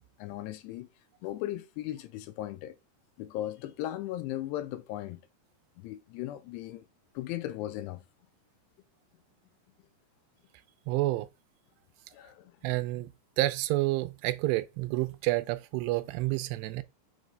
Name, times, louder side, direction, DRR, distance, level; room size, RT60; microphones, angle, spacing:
voice 1, 0.2-0.9 1.2-2.8 3.2-5.2 5.8-6.8 7.2-8.0 12.1-12.5, left 14 dB, 85° left, 2.7 m, -37 dB
voice 2, 10.9-11.3 12.6-13.1 13.4-16.8, right 18 dB, 85° right, 2.7 m, -29 dB
6.5 x 3.2 x 5.1 m
omnidirectional pair, 4.8 m